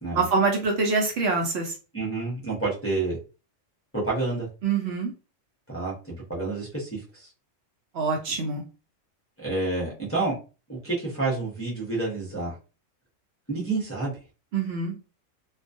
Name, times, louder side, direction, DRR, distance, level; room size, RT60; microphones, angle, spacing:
voice 1, 0.1-1.7 4.6-5.1 7.9-8.6 14.5-14.9, right 4 dB, 65° right, 2 dB, 0.8 m, -25 dB
voice 2, 1.9-3.2 3.9-4.5 5.7-7.3 9.4-10.4 10.7-12.6 13.5-14.1, right 3 dB, 15° left, -6 dB, 0.6 m, -29 dB
2.3 x 2.2 x 2.5 m, 0.33 s
omnidirectional pair, 1.3 m